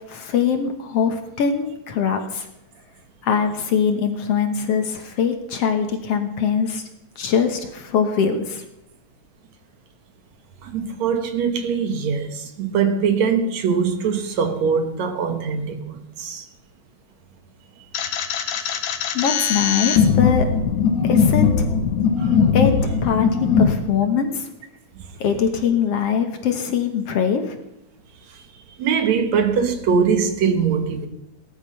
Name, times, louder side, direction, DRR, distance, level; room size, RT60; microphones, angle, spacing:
voice 1, 0.1-2.5 3.2-6.8 7.2-8.6 19.1-20.5 21.0-21.7 22.5-22.7 23.0-23.3 23.6-24.5 25.2-27.6, left 7 dB, 60° left, 2.1 m, -22 dB
voice 2, 10.6-16.5 18.5-18.6 22.2-22.3 28.8-31.1, right 6 dB, 70° right, 2.5 m, -22 dB
sound 1, 17.9-23.7, left 6 dB, 85° left, 2.8 m, -19 dB
17.5 x 12.5 x 5.7 m
omnidirectional pair, 3.5 m